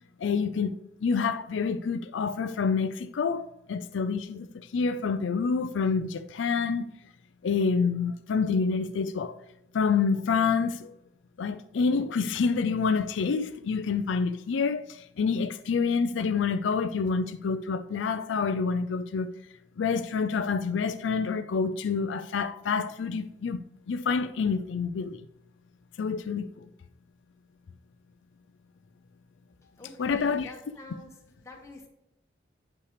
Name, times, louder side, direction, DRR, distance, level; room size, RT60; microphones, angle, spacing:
voice 1, 0.2-6.8 7.4-9.4 9.7-11.0 11.4-19.3 19.8-23.6 23.9-25.2 26.0-26.7 30.0-30.5, left 5 dB, 90° left, 0.4 m, -27 dB
voice 2, 29.8-31.2 31.4-31.9, left 2 dB, 15° left, 1.3 m, -47 dB
9.4 x 5.7 x 3.2 m
head